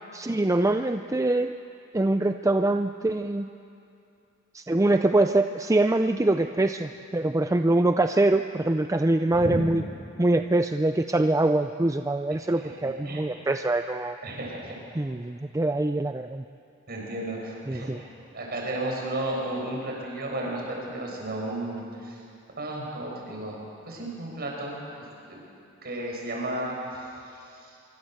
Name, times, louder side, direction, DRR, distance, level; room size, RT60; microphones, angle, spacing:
voice 1, 0.1-1.5 1.9-3.5 4.5-9.8 10.2-14.2 15.0-16.4 17.7-18.0, right 2 dB, 15° right, 8 dB, 0.5 m, -24 dB
voice 2, 12.8-13.3 14.2-14.7 16.9-18.1 18.3-22.2 22.6-25.4 25.8-27.1 27.6-27.8, right 1 dB, 50° right, -2 dB, 7.0 m, -33 dB
25.0 x 24.0 x 7.9 m, 2.6 s
head